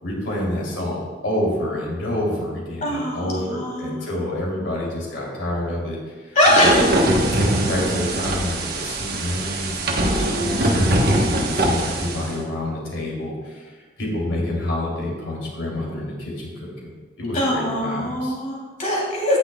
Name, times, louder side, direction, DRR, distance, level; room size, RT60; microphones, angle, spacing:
voice 1, 0.0-6.4 6.6-6.8 7.2-16.9 17.2-18.3, left 1 dB, 85° left, -3 dB, 2.9 m, -28 dB
voice 2, 2.8-3.9 6.3-6.9 10.1-10.6 17.3-19.4, left 1 dB, 40° left, -4 dB, 2.8 m, -22 dB
sound 1, 6.4-12.3, right 1 dB, 55° right, 1.1 m, -22 dB
17.5 x 6.0 x 2.2 m, 1.4 s
head